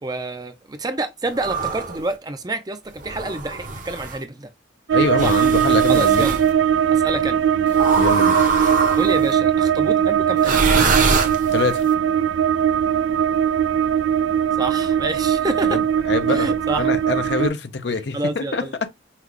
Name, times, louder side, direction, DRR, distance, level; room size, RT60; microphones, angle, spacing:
voice 1, 0.0-4.5 5.2-5.4 5.9-6.4 6.9-7.4 9.0-10.6 14.6-15.8 16.3-16.9 18.1-18.7, right 2 dB, 20° right, 0.5 m, -28 dB
sound 1, 1.3-2.0 3.0-4.2 5.2-6.4 7.7-9.3 10.4-11.8, right 4 dB, 45° right, 0.9 m, -23 dB
voice 2, 4.9-6.3 8.0-8.4 11.5-11.8 15.6-18.9, left 3 dB, 60° left, 0.6 m, -24 dB
sound 2, 4.9-17.5, right 9 dB, 80° right, 0.3 m, -20 dB
5.8 x 2.3 x 3.1 m
head